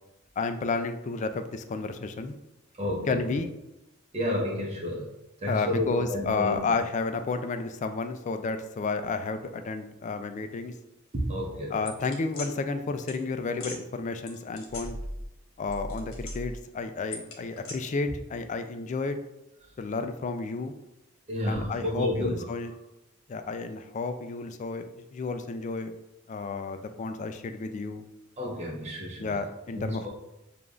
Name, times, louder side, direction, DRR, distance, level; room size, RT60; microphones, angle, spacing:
voice 1, 0.4-2.4 3.1-3.5 5.5-10.7 11.7-15.0 15.6-19.2 19.8-20.7 21.5-22.7 23.3-25.9 26.3-28.0 29.2-30.1, left 4 dB, 35° left, 8 dB, 0.3 m, -31 dB
voice 2, 2.8-3.2 4.1-5.1 5.4-6.6 11.1-11.8 21.3-22.5 28.4-29.4 29.7-30.1, left 1 dB, 30° right, -3 dB, 0.8 m, -30 dB
sound 1, 11.9-12.5 13.1-13.2 13.5-13.8 14.3-15.4 15.6-16.6 17.1-17.7, left 1 dB, 70° left, 1.0 m, -38 dB
6.7 x 2.5 x 2.4 m, 0.91 s
head